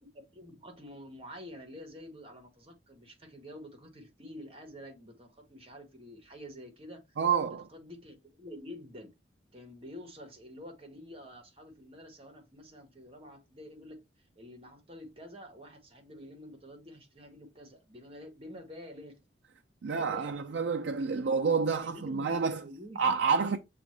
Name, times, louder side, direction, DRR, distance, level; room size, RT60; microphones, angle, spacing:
voice 1, 0.0-7.0 7.5-9.1 9.5-14.0 14.4-19.2 19.8-20.4 21.7-23.2, left 1 dB, 30° right, 1.2 m, -48 dB
voice 2, 7.2-7.6 19.8-22.6 23.0-23.6, right 5 dB, 75° right, 0.4 m, -28 dB
6.9 x 2.4 x 3.0 m
head